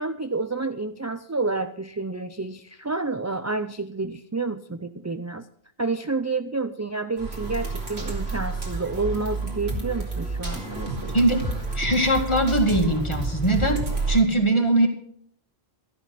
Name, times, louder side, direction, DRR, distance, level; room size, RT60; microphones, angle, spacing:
voice 1, 0.0-5.5 5.8-11.3, right 3 dB, 25° right, 9 dB, 0.4 m, -29 dB
sound 1, 7.2-14.2, right 3 dB, 90° right, 2.9 m, -29 dB
voice 2, 11.1-11.5 11.8-14.9, right 1 dB, 30° left, 4 dB, 2.0 m, -21 dB
13.5 x 11.5 x 6.0 m, 0.64 s
omnidirectional pair, 1.0 m